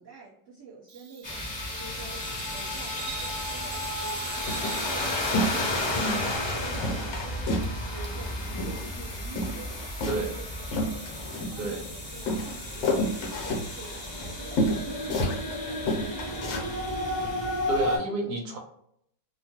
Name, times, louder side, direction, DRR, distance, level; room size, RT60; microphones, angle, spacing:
voice 1, 0.0-1.5 1.7-7.6 7.9-9.7 10.0-11.2 11.5-17.5 18.0-18.2, right 4 dB, 45° right, -9 dB, 1.3 m, -47 dB
Bird vocalization bird call bird song, 0.9-8.4, right 8 dB, 85° right, 1.3 m, -46 dB
sound 1, 1.2-18.0, left 1 dB, 40° left, 0.3 m, -32 dB
sound 2, 3.9-4.1 4.5-5.0 5.3-6.1 6.4-6.5 6.8-7.8 8.0-9.0 9.3-11.8 12.3-15.6 15.9-16.7 17.1-17.3, left 1 dB, 65° left, 1.2 m, -30 dB
voice 2, 5.9-6.2 10.1-10.3 11.6-11.8 17.7-18.6, right 2 dB, 70° right, 2 dB, 1.2 m, -30 dB
2.9 x 2.2 x 2.9 m, 0.72 s
omnidirectional pair, 1.8 m